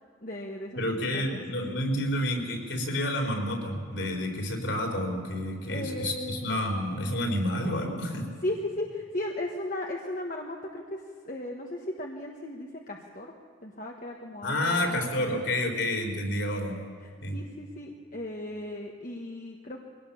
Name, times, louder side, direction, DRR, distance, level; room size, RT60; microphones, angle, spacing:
voice 1, 0.2-1.4 5.7-6.5 8.4-13.3 13.6-15.8 17.0-19.9, left 1 dB, 40° left, 1 dB, 1.4 m, -36 dB
voice 2, 0.8-8.3 14.4-16.8 17.2-17.4, left 1 dB, 60° left, 3 dB, 4.1 m, -29 dB
23.0 x 18.0 x 7.1 m, 2.1 s
head